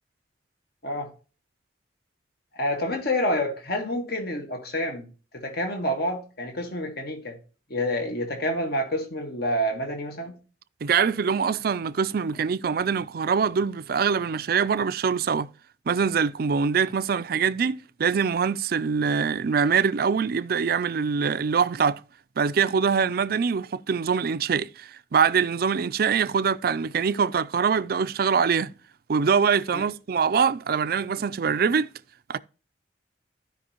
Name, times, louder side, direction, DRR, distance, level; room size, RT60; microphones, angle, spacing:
voice 1, 2.5-5.1 5.3-7.4 7.7-10.3 29.7-29.9, equal, 60° left, 1.6 m, -28 dB
voice 2, 10.8-15.5 15.9-22.0 22.4-28.7 29.1-31.9 32.3-32.4, right 6 dB, 55° right, 0.4 m, -24 dB
15.0 x 5.2 x 2.9 m
head